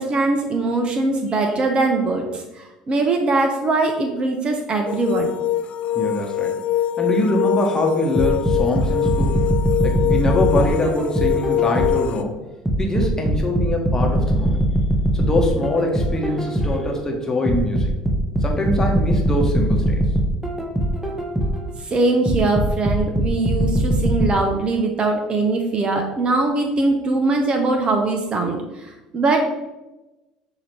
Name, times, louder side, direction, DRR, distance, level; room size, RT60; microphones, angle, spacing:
voice 1, 0.0-5.3 21.8-29.5, right 3 dB, 35° right, 3 dB, 0.7 m, -21 dB
sound 1, 4.9-12.2, left 11 dB, 50° left, 0.3 m, -23 dB
voice 2, 5.9-6.6 7.0-9.4 9.8-12.4 12.8-14.6 15.1-17.9 18.4-20.0, left 1 dB, 20° left, 1 dB, 1.1 m, -23 dB
sound 2, 8.1-12.1 12.7-16.9 17.5-21.7 22.3-24.3, equal, 5° right, 0.9 m, -21 dB
5.8 x 2.8 x 3.3 m, 1.1 s
hypercardioid pair, 70°, 3 cm